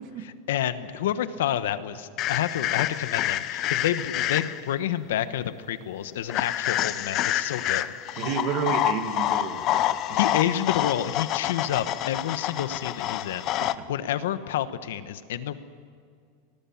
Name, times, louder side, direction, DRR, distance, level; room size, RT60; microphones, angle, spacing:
voice 1, 0.2-7.9 10.1-15.5, left 11 dB, 85° left, 12 dB, 1.3 m, -29 dB
sound 1, 2.2-4.7 6.3-13.7, left 13 dB, 35° left, 0.7 m, -27 dB
voice 2, 8.2-10.2 13.6-13.9, right 8 dB, 40° right, 8 dB, 1.7 m, -31 dB
24.5 x 20.0 x 7.3 m, 2.2 s
supercardioid pair, 165°, 0 cm